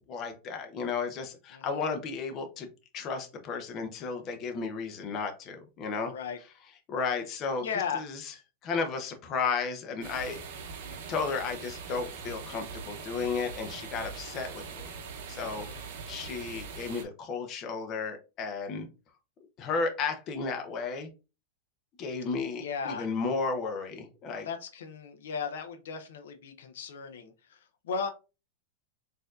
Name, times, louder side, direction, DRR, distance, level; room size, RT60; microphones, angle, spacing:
voice 1, 0.1-2.7 2.9-6.1 6.9-7.7 7.9-8.2 8.6-10.6 11.1-14.8 15.3-15.7 16.1-18.9 19.6-21.1 22.0-24.5, left 4 dB, 35° left, 0.7 m, -33 dB
voice 2, 1.5-1.9 6.1-6.4 7.6-8.0 10.8-11.1 15.3-15.8 22.6-23.1 24.4-28.1, left 6 dB, 80° left, 0.5 m, -36 dB
sound 1, 10.0-17.0, right 5 dB, 60° right, 0.7 m, -42 dB
4.2 x 2.6 x 2.4 m
supercardioid pair, 140°, 0 cm